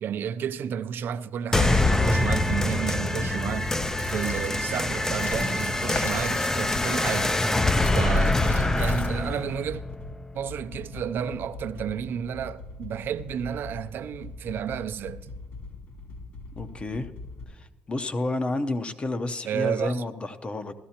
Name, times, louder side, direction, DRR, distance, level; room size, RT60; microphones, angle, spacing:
voice 1, 0.0-3.7 4.1-7.4 7.9-9.8 10.3-15.3 19.5-20.0, right 8 dB, 65° right, 0.5 m, -31 dB
sound 1, 1.5-10.5, left 2 dB, 15° left, 0.4 m, -25 dB
sound 2, 3.2-17.4, left 3 dB, 70° left, 2.9 m, -42 dB
sound 3, 3.8-9.4, left 2 dB, 55° left, 2.7 m, -40 dB
voice 2, 16.6-17.1 17.5-20.7, left 2 dB, 30° left, 0.7 m, -30 dB
15.5 x 13.5 x 2.9 m
cardioid pair, 95°, 4 cm